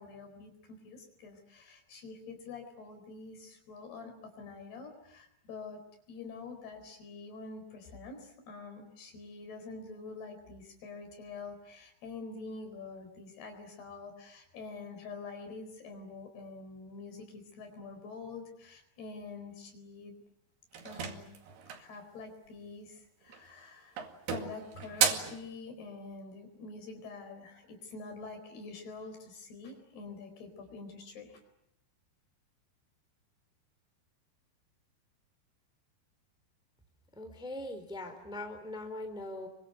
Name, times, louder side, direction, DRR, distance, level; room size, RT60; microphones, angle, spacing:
voice 1, 0.0-20.2 20.8-21.3 21.8-24.0 24.3-31.4, left 4 dB, 60° left, 6 dB, 6.3 m, -46 dB
sound 1, 20.7-22.0 23.2-23.6 24.0-25.4, right 7 dB, 65° right, 4.0 m, -33 dB
voice 2, 37.1-39.5, left 1 dB, ahead, 5 dB, 3.0 m, -41 dB
29.5 x 24.5 x 8.0 m, 0.81 s
omnidirectional pair, 5.2 m